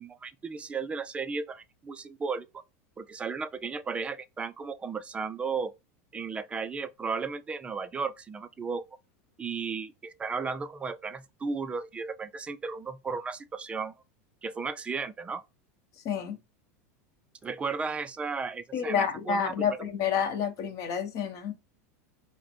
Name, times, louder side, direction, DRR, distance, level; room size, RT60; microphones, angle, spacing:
voice 1, 0.0-2.5 3.0-5.7 6.1-8.9 9.4-13.9 14.4-15.4 17.4-19.8, right 5 dB, 15° right, 0.4 m, -34 dB
voice 2, 16.0-16.4 18.7-21.5, left 7 dB, 45° left, 1.1 m, -29 dB
4.7 x 2.1 x 4.4 m
supercardioid pair, 140°, 8 cm